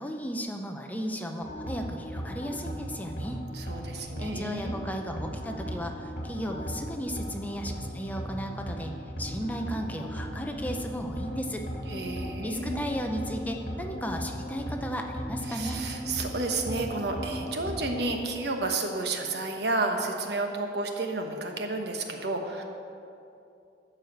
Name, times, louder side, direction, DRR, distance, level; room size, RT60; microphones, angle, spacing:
voice 1, 0.0-3.4 3.9-11.6 12.4-15.8, equal, 10° left, 3 dB, 0.6 m, -35 dB
sound 1, 1.4-18.0, equal, 55° left, 2.5 m, -37 dB
voice 2, 3.5-4.9 11.9-13.0 15.5-22.6, right 2 dB, 65° right, 3 dB, 1.1 m, -31 dB
12.5 x 4.8 x 7.9 m, 2.6 s
head